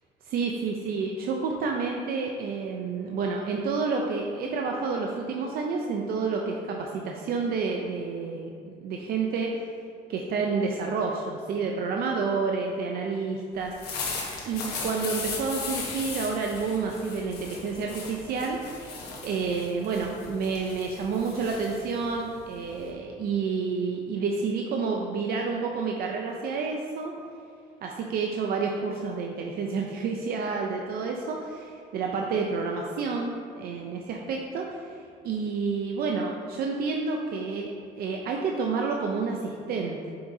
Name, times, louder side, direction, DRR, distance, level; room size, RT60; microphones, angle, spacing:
voice 1, 0.2-9.7 10.1-14.2 14.5-18.9 19.2-27.1 27.8-35.0 35.2-37.7 38.0-40.1, right 4 dB, 65° right, 1 dB, 0.6 m, -29 dB
sound 1, 13.6-22.9, left 4 dB, 70° left, 1.3 m, -37 dB
7.2 x 5.7 x 2.8 m, 2.4 s
cardioid pair, 110°, 17 cm